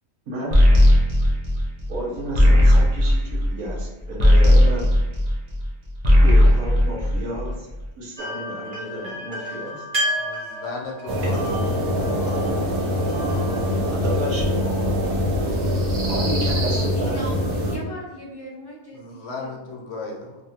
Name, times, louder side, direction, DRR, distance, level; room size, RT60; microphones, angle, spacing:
voice 1, 0.3-0.7 1.9-4.9 6.2-7.7 8.0-9.8 11.4-11.6 14.0-14.7 16.0-17.4, right 1 dB, 90° right, -3 dB, 1.3 m, -32 dB
sound 1, 0.5-5.7 6.0-7.7, left 1 dB, 50° right, 0.5 m, -16 dB
sound 2, 8.2-15.1, equal, 25° right, 1.0 m, -32 dB
voice 2, 10.1-11.4 18.9-20.4, left 3 dB, 60° left, 0 dB, 0.9 m, -35 dB
sound 3, 11.1-17.8, equal, 70° right, 1.2 m, -23 dB
voice 3, 16.5-19.9, equal, 25° left, -5 dB, 0.5 m, -38 dB
3.3 x 2.3 x 2.8 m, 1.1 s
omnidirectional pair, 1.4 m